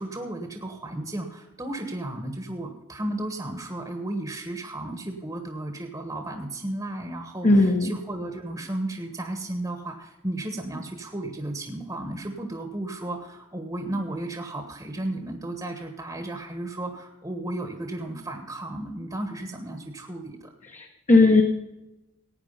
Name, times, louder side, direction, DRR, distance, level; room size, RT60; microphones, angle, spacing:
voice 1, 0.0-20.4, right 1 dB, 15° right, 5 dB, 1.3 m, -34 dB
voice 2, 7.4-7.9 20.7-21.4, left 2 dB, 35° left, 3 dB, 1.1 m, -18 dB
16.0 x 9.6 x 5.5 m, 1.0 s
head